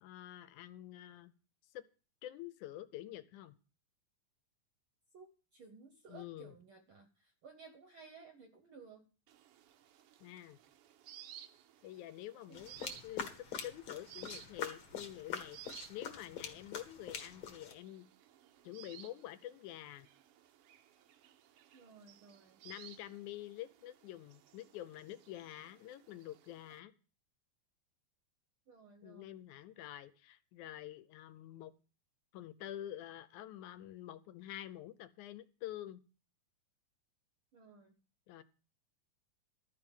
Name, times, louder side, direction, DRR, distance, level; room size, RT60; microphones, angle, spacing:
voice 1, 0.0-1.3 1.7-1.8 2.2-3.5 6.1-6.5 10.2-10.6 11.8-13.3 13.6-18.1 18.6-20.1 22.6-26.9 29.0-31.7 32.3-36.0 38.3-38.4, left 13 dB, 80° left, 14 dB, 2.1 m, -48 dB
voice 2, 5.1-9.1 12.5-12.8 21.7-22.6 28.7-29.4 37.5-37.9, right 5 dB, 65° right, 7 dB, 1.3 m, -57 dB
sound 1, 9.3-26.8, right 11 dB, 85° right, 1.3 m, -58 dB
sound 2, 12.5-17.7, left 6 dB, 55° left, 1.8 m, -44 dB
12.5 x 4.9 x 8.8 m, 0.36 s
omnidirectional pair, 3.5 m